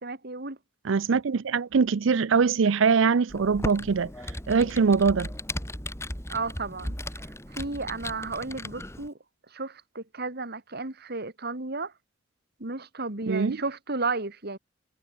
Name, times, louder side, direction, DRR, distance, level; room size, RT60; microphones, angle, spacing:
voice 1, 0.0-0.6 6.3-7.0 7.2-9.1 9.5-11.9 12.6-14.6, right 3 dB, 55° right, 2.7 m, -33 dB
voice 2, 0.8-4.1 4.5-5.3 13.2-13.6, right 5 dB, 70° right, 0.5 m, -22 dB
Computer keyboard, 3.3-9.1, left 1 dB, 15° left, 7.7 m, -36 dB
head